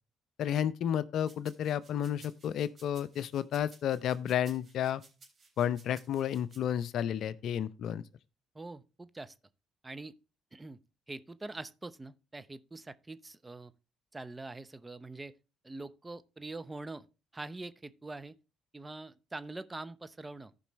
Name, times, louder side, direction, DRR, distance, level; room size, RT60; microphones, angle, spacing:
voice 1, 0.4-5.0 5.6-8.0, left 9 dB, 70° left, 0.5 m, -31 dB
sound 1, 1.2-6.6, right 3 dB, 45° right, 3.6 m, -58 dB
voice 2, 8.5-9.3 9.8-10.1 10.5-10.8 11.1-13.7 14.1-15.3 15.6-17.1 17.3-18.3 18.7-20.5, right 2 dB, 20° right, 0.8 m, -44 dB
14.5 x 5.3 x 3.1 m
supercardioid pair, 60°, 0 cm